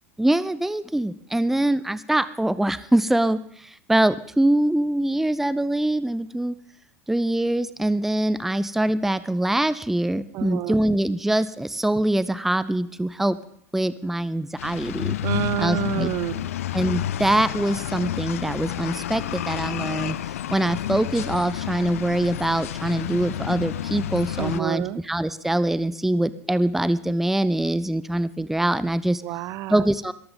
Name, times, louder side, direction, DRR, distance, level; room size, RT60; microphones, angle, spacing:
voice 1, 0.2-6.5 7.1-13.4 13.7-15.2 15.6-16.1 16.7-20.2 20.5-29.2 29.7-30.1, right 1 dB, 5° right, 16 dB, 0.6 m, -23 dB
voice 2, 10.3-10.8 15.2-16.5 24.4-25.0 29.2-29.9, right 15 dB, 45° right, 19 dB, 0.7 m, -28 dB
sound 1, 14.6-24.6, left 12 dB, 65° left, 0.5 m, -30 dB
21.5 x 14.5 x 3.8 m, 0.64 s
figure-of-eight pair, 80°, 8 cm